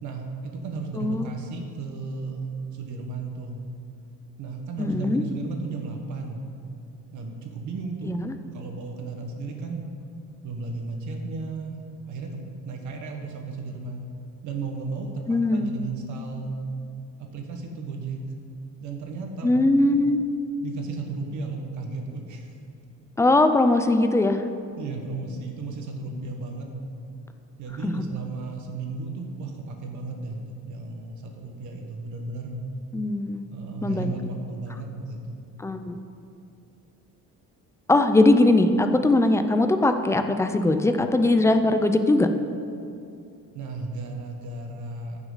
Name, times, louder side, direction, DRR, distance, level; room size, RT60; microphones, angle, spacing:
voice 1, 0.0-2.4 2.7-3.6 4.4-6.4 7.1-8.2 8.5-9.9 10.4-11.8 12.1-12.4 12.7-14.1 14.4-16.6 17.2-18.2 18.8-19.6 20.6-22.6 24.8-26.7 27.6-32.6 33.5-35.4 43.5-45.2, right 3 dB, 65° right, 2 dB, 1.5 m, -34 dB
voice 2, 1.0-1.3 4.8-5.2 8.0-8.4 15.3-15.7 19.4-20.2 23.2-24.4 27.8-28.0 32.9-33.4 33.8-34.1 35.6-36.0 37.9-42.3, left 2 dB, 10° left, 8 dB, 0.4 m, -20 dB
15.0 x 6.0 x 4.0 m, 2.5 s
cardioid pair, 155°, 32 cm